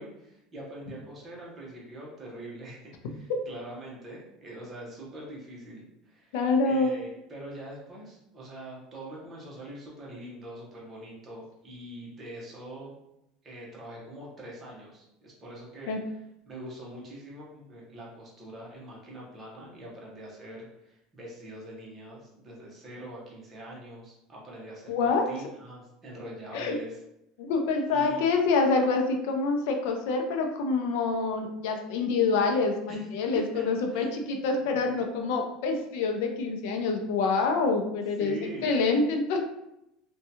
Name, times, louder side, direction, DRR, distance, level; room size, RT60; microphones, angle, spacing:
voice 1, 0.0-6.4 6.6-13.0 13.4-16.1 16.5-27.0 27.9-28.2 32.9-33.0 33.3-33.6 33.9-34.8 38.2-38.7, right 1 dB, 20° right, -4 dB, 0.8 m, -43 dB
voice 2, 6.3-6.9 15.9-16.0 24.9-25.3 26.5-26.8 27.4-38.4 38.6-39.4, left 4 dB, 75° left, 4 dB, 0.4 m, -26 dB
2.7 x 2.2 x 2.7 m, 0.85 s
cardioid pair, 160°, 0 cm